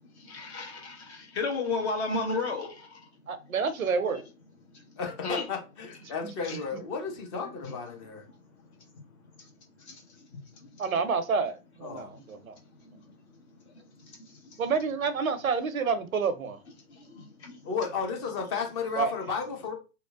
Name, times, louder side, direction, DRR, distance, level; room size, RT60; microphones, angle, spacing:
voice 1, 0.0-3.1 4.7-5.5 6.4-6.6 7.6-7.7 8.3-8.4 9.4-9.5 9.8-10.8 12.1-12.2 12.8-14.6 16.9-17.6, left 3 dB, 50° left, 0.9 m, -35 dB
voice 2, 3.3-4.2 6.2-6.3 10.8-12.6 14.6-16.6 19.0-19.1, right 5 dB, 85° right, 0.6 m, -28 dB
voice 3, 5.0-8.2 11.8-12.1 17.6-19.7, left 5 dB, 20° left, 0.4 m, -33 dB
2.8 x 2.1 x 2.3 m
figure-of-eight pair, 110°, 41 cm